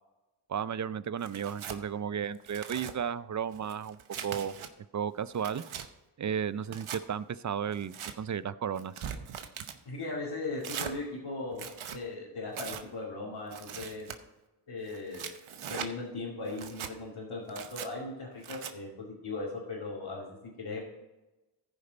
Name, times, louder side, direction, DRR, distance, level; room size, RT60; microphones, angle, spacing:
voice 1, 0.5-4.0 4.2-4.5 4.9-5.6 6.2-8.9, right 8 dB, 40° right, 17 dB, 0.5 m, -34 dB
Tearing, 1.2-1.8 2.3-2.9 3.5-4.7 5.2-5.9 6.6-7.0 7.7-8.1 8.8-9.8 10.6-10.9 11.5-12.0 12.5-12.8 13.5-14.2 14.9-15.9 16.5-16.9 17.5-17.9 18.4-18.7, right 8 dB, 80° right, 0.9 m, -41 dB
voice 2, 9.9-14.0 14.7-15.3 15.7-20.8, left 3 dB, 75° left, -7 dB, 2.5 m, -38 dB
15.0 x 5.3 x 4.0 m, 1.1 s
cardioid pair, 45°, 49 cm